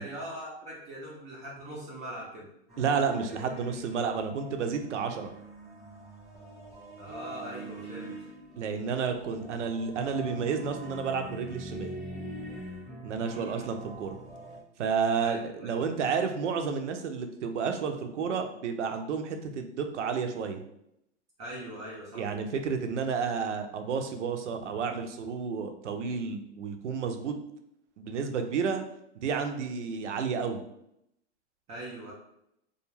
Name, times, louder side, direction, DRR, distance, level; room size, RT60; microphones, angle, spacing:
voice 1, 0.0-2.5 7.0-8.1 13.1-13.6 15.2-15.7 21.4-22.3 31.7-32.1, right 1 dB, 20° right, -5 dB, 0.4 m, -41 dB
sound 1, 2.7-14.6, right 1 dB, ahead, 0.9 m, -43 dB
voice 2, 2.8-5.3 8.6-11.9 13.0-14.2 14.8-20.6 22.1-27.3 28.0-28.8 29.2-30.6, right 6 dB, 85° right, 6 dB, 0.6 m, -31 dB
2.3 x 2.3 x 3.0 m, 0.78 s
hypercardioid pair, 125°, 35 cm